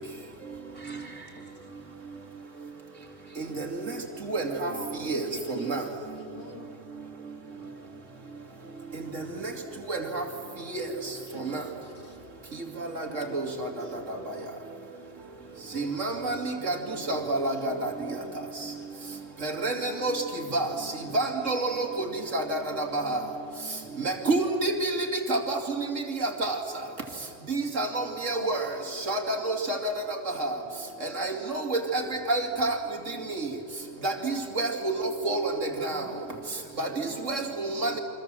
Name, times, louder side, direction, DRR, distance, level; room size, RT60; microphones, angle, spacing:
voice 1, 0.7-1.7 2.3-2.4 2.7-3.5 36.5-37.1, right 3 dB, 35° right, -2 dB, 4.4 m, -50 dB
voice 2, 3.4-3.9 4.3-4.7 5.0-5.2 5.5-5.8 9.1-9.5 9.9-10.2 10.7-10.8 11.3-11.6 12.9-13.7 14.1-14.2 15.7-16.8 17.1-17.9 19.4-20.2 20.5-23.2 24.0-26.6 27.5-28.6 28.9-30.6 31.0-32.8 33.1-33.4 34.0-35.0 35.2-36.1 36.8-38.0, right 2 dB, 80° right, 3 dB, 3.0 m, -29 dB
voice 3, 4.7-6.7 11.3-12.2 13.1-14.6 16.9-18.8 19.8-20.0 20.4-21.2 28.4-28.7 35.8-36.1, left 1 dB, 55° left, 2 dB, 3.2 m, -47 dB
28.5 x 25.0 x 7.6 m, 2.4 s
omnidirectional pair, 1.3 m